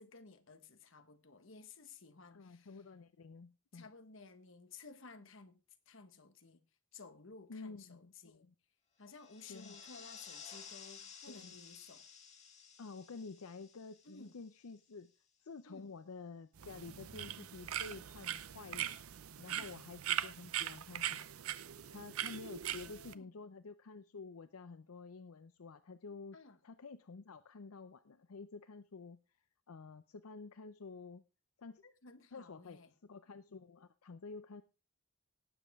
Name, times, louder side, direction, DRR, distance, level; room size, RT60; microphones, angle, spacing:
voice 1, 0.0-2.8 3.7-6.6 6.9-8.5 9.0-12.1 14.0-14.4 15.6-15.9 19.5-19.7 22.7-23.3 26.3-26.6 31.8-32.9, left 4 dB, 60° left, 1.3 m, -56 dB
voice 2, 2.3-3.9 7.5-8.5 9.5-9.8 11.3-11.5 12.8-15.1 15.4-19.0 19.4-21.3 21.9-26.4 26.6-29.2 29.7-31.2 31.6-31.8 32.3-34.6, left 4 dB, 85° left, 0.6 m, -50 dB
sound 1, 9.1-14.9, left 6 dB, 30° left, 2.0 m, -54 dB
sound 2, 16.6-23.1, right 11 dB, 80° right, 0.7 m, -41 dB
18.0 x 7.5 x 3.5 m
head